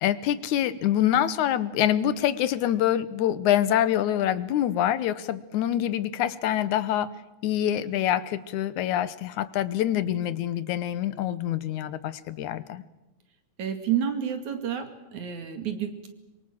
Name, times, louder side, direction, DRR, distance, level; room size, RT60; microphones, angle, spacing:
voice 1, 0.0-7.1 7.4-12.8, left 11 dB, 80° left, 15 dB, 2.4 m, -25 dB
voice 2, 13.6-16.1, right 9 dB, 70° right, 7 dB, 3.6 m, -30 dB
24.5 x 23.5 x 7.7 m, 1.0 s
omnidirectional pair, 3.4 m